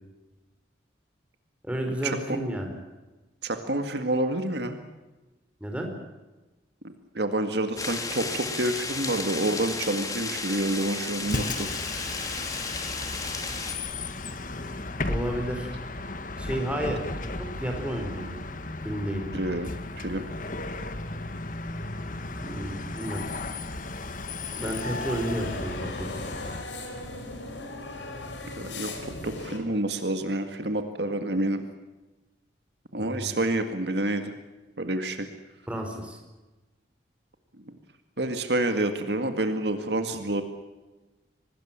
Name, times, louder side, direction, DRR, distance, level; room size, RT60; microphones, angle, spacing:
voice 1, 1.6-2.7 5.6-5.9 15.1-15.7 16.4-18.4 18.8-19.2 22.4-23.2 24.6-26.2 33.0-33.3 35.7-36.2, equal, 5° right, 3 dB, 4.7 m, -32 dB
voice 2, 3.4-4.8 6.8-11.7 19.3-20.3 28.6-31.6 32.9-34.3 34.8-35.3 37.7-37.8 38.2-40.4, right 1 dB, 65° right, 7 dB, 2.0 m, -28 dB
sound 1, 7.8-13.7, left 3 dB, 20° left, 2.7 m, -33 dB
Bus, 11.2-26.6, left 2 dB, 45° left, 1.7 m, -35 dB
sound 2, 24.6-29.6, left 2 dB, 75° left, 5.0 m, -38 dB
25.0 x 20.0 x 7.5 m, 1.1 s
head